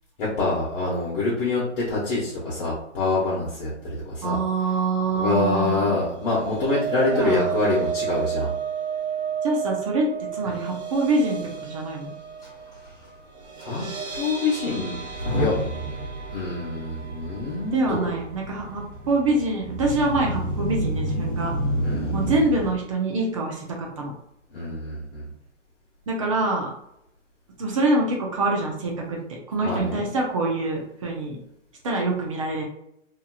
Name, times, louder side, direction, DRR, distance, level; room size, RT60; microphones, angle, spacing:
voice 1, 0.2-4.4 5.1-8.5 13.6-13.8 14.1-15.0 15.3-15.6 16.3-18.1 21.8-22.1 24.5-25.3 29.6-30.0, left 3 dB, 45° left, -8 dB, 1.0 m, -26 dB
voice 2, 4.2-6.0 7.1-7.6 9.4-12.2 17.7-21.5 22.1-24.1 26.1-26.7 27.6-31.4 31.8-32.6, right 2 dB, 25° right, 0 dB, 0.5 m, -25 dB
sound 1, 6.0-20.3 20.6-20.9 21.2-21.3, right 7 dB, 60° right, 0.9 m, -33 dB
Motor vehicle (road) / Engine starting / Accelerating revving vroom, 12.4-12.5 12.7-13.0 13.6-13.7 15.0-22.7, equal, 20° left, 1.0 m, -30 dB
2.8 x 2.7 x 2.3 m, 0.76 s
hypercardioid pair, 150°, 38 cm